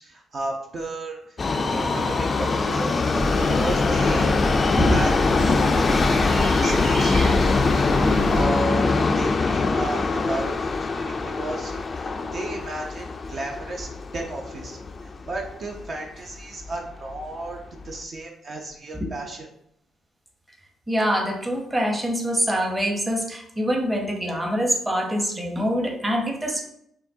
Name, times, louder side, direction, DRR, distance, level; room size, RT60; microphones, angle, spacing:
voice 1, 0.0-1.4 1.7-2.9 3.5-4.3 4.9-6.1 6.6-7.9 8.3-17.6 17.8-19.5, right 2 dB, 50° right, 1 dB, 0.7 m, -34 dB
Subway metro underground, 1.4-15.5 15.8-15.9 16.7-16.8 17.1-17.2 17.8-17.9, left 3 dB, 35° left, 0.3 m, -23 dB
sound 1, 3.1-8.4, right 1 dB, 85° right, 1.0 m, -29 dB
voice 2, 4.7-5.1 7.9-8.4 9.5-10.3 12.2-12.3 18.9-19.1 20.9-26.6, equal, 15° right, 1 dB, 0.8 m, -25 dB
5.7 x 2.3 x 2.8 m, 0.72 s
cardioid pair, 90°, 0 cm